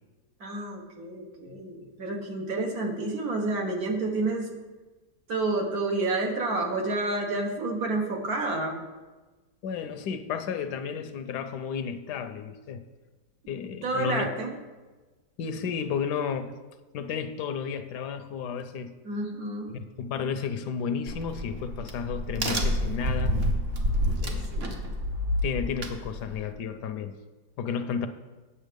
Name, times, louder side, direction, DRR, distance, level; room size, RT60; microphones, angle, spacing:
voice 1, 0.4-4.5 5.3-8.8 13.8-14.5 19.0-19.7 24.5-24.8, right 2 dB, 60° right, 1 dB, 1.7 m, -29 dB
voice 2, 9.6-12.8 13.5-14.3 15.4-16.6 16.9-18.9 19.7-23.4 24.2-24.5 25.4-27.2 27.6-28.1, left 6 dB, 75° left, 10 dB, 1.2 m, -32 dB
Crack, 21.1-26.5, equal, 40° right, 1.1 m, -29 dB
9.0 x 7.0 x 5.2 m, 1.2 s
omnidirectional pair, 1.8 m